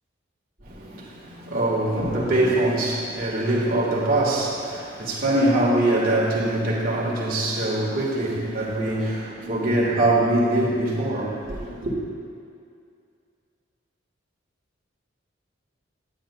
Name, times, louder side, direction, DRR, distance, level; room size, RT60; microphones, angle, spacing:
voice 1, 0.7-11.9, right 1 dB, 45° right, -5 dB, 1.7 m, -23 dB
11.5 x 9.3 x 2.3 m, 2.4 s
head